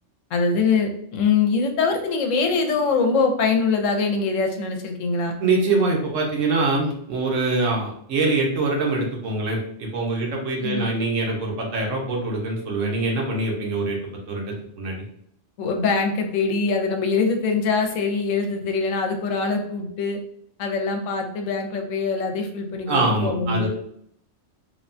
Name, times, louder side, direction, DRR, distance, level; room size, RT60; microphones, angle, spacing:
voice 1, 0.3-5.4 10.6-10.9 15.6-20.2 20.6-23.7, left 4 dB, 85° left, 4 dB, 0.9 m, -23 dB
voice 2, 5.4-14.0 14.3-15.0 22.9-23.7, right 3 dB, 80° right, 0 dB, 1.1 m, -24 dB
3.3 x 2.1 x 2.5 m, 0.69 s
omnidirectional pair, 1.3 m